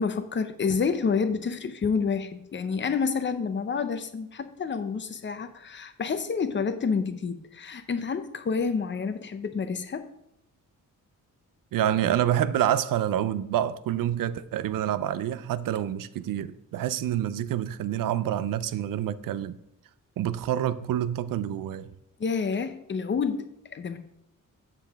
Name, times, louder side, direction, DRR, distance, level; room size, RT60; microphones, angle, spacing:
voice 1, 0.0-10.1 22.2-24.0, left 5 dB, 35° left, 0.6 m, -29 dB
voice 2, 11.7-19.6 20.2-21.9, right 11 dB, 90° right, 0.5 m, -27 dB
7.4 x 6.8 x 3.5 m
wide cardioid pair, 125°, 32 cm